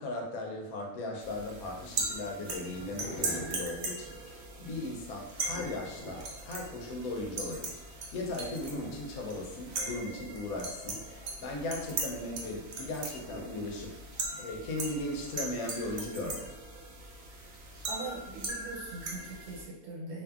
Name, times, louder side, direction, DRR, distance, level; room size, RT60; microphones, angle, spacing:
voice 1, 0.0-16.5, left 2 dB, 90° left, 1 dB, 1.0 m, -38 dB
sound 1, 0.9-16.0, equal, 55° left, 0.5 m, -51 dB
sound 2, 1.2-19.6, right 3 dB, 65° right, 0.7 m, -39 dB
voice 2, 17.9-20.2, right 3 dB, 85° right, -4 dB, 1.3 m, -41 dB
2.6 x 2.5 x 2.3 m, 0.90 s
omnidirectional pair, 1.4 m